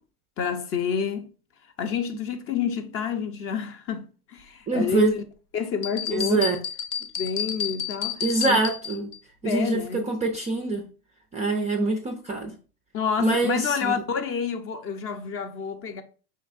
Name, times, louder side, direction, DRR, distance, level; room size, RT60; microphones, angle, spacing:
voice 1, 0.4-1.3 1.8-5.2 5.5-6.5 7.2-8.6 9.4-10.1 12.9-16.0, left 7 dB, 30° left, 0.5 m, -29 dB
voice 2, 4.7-5.1 6.1-6.6 8.2-9.1 9.4-10.8 11.3-12.5 13.2-13.9, right 3 dB, 15° right, 0.3 m, -24 dB
sound 1, 5.8-9.2, left 8 dB, 85° left, 0.7 m, -31 dB
5.3 x 3.2 x 2.4 m
hypercardioid pair, 100°, 45 cm